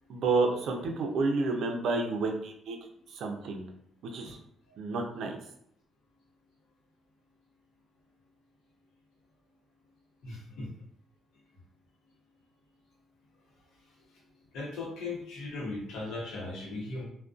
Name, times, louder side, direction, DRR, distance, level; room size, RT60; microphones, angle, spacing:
voice 1, 0.1-2.8 3.2-3.6 4.1-4.4 4.8-5.4, right 3 dB, 75° right, 3 dB, 0.4 m, -30 dB
voice 2, 10.2-10.7 14.5-17.0, left 3 dB, 85° left, -3 dB, 0.8 m, -37 dB
2.4 x 2.1 x 2.4 m, 0.70 s
cardioid pair, 90°, 0 cm